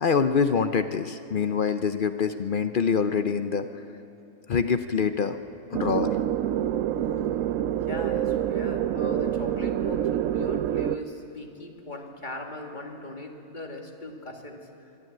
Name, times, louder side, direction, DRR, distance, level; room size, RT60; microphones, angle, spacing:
voice 1, 0.0-3.7 4.5-5.4 5.7-6.2, left 6 dB, 55° left, 9 dB, 0.6 m, -25 dB
sound 1, 5.7-11.0, right 11 dB, 70° right, 0.9 m, -27 dB
voice 2, 7.9-14.7, left 2 dB, 35° left, 2 dB, 1.9 m, -39 dB
23.5 x 12.0 x 9.0 m, 2.9 s
omnidirectional pair, 1.5 m